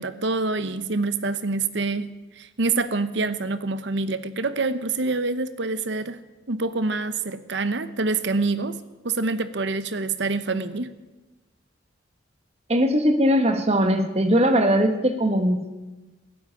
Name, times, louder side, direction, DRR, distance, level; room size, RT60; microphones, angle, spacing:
voice 1, 0.0-2.1 2.4-6.2 6.5-8.8 9.0-10.9, right 3 dB, 60° right, 13 dB, 0.8 m, -26 dB
voice 2, 12.7-15.7, equal, 30° right, 7 dB, 1.3 m, -20 dB
16.0 x 8.0 x 9.6 m, 1.1 s
head